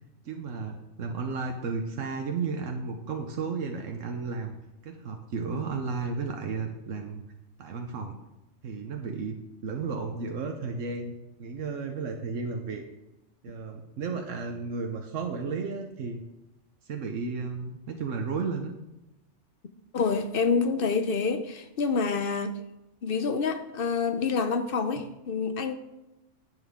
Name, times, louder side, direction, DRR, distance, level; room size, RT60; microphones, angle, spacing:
voice 1, 0.2-4.5 4.8-7.2 7.6-8.2 8.6-9.4 9.6-12.8 13.4-16.2 16.9-18.7, right 4 dB, 85° right, 4 dB, 1.2 m, -33 dB
voice 2, 19.9-22.6 23.0-25.7, left 5 dB, 55° left, 10 dB, 0.8 m, -27 dB
10.5 x 8.6 x 3.6 m, 0.96 s
omnidirectional pair, 1.3 m